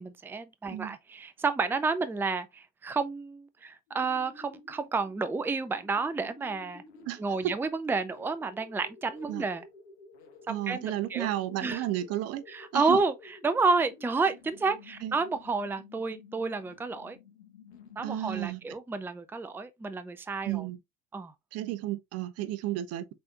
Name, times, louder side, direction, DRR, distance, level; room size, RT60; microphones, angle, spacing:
voice 1, 0.0-6.8 7.2-9.6 10.7-11.3 11.6-11.8 12.5-17.2 18.0-20.7 21.1-21.3, right 4 dB, 5° right, 0.5 m, -30 dB
sound 1, 3.9-18.8, left 4 dB, 80° left, 1.3 m, -53 dB
voice 2, 10.5-12.4 12.7-13.0 15.0-15.1 18.0-18.6 20.5-20.8 21.5-23.1, right 14 dB, 50° right, 0.7 m, -32 dB
5.5 x 3.9 x 2.3 m
hypercardioid pair, 70°, 32 cm